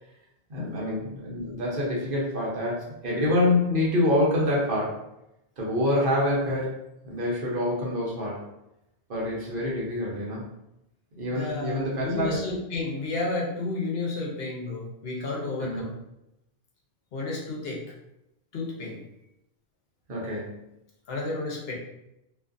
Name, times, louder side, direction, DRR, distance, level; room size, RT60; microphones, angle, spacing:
voice 1, 0.5-5.0 5.6-6.8 7.0-8.4 9.1-10.5 11.2-12.4 15.6-15.8 20.1-20.6, left 1 dB, 60° right, -4 dB, 0.9 m, -26 dB
voice 2, 11.3-15.9 17.1-17.8 18.5-19.0 21.1-21.8, left 3 dB, 75° left, -3 dB, 0.9 m, -31 dB
2.5 x 2.4 x 2.5 m, 0.87 s
omnidirectional pair, 1.0 m